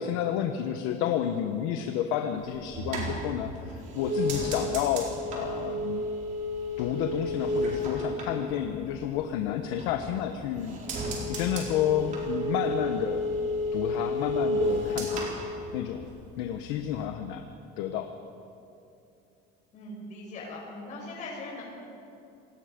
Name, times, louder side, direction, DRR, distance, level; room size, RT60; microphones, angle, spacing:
voice 1, 0.0-6.0 6.8-10.8 11.3-13.3 13.7-15.3 15.7-16.1 16.4-17.4 17.8-18.1, left 9 dB, 85° left, 6 dB, 1.2 m, -30 dB
sound 1, 2.4-9.2 9.6-10.3 10.6-16.3 16.5-17.0, equal, 40° right, 4.5 m, -32 dB
voice 2, 19.7-21.6, left 2 dB, 40° left, -4 dB, 5.4 m, -40 dB
27.0 x 19.0 x 5.3 m, 2.6 s
cardioid pair, 155°, 19 cm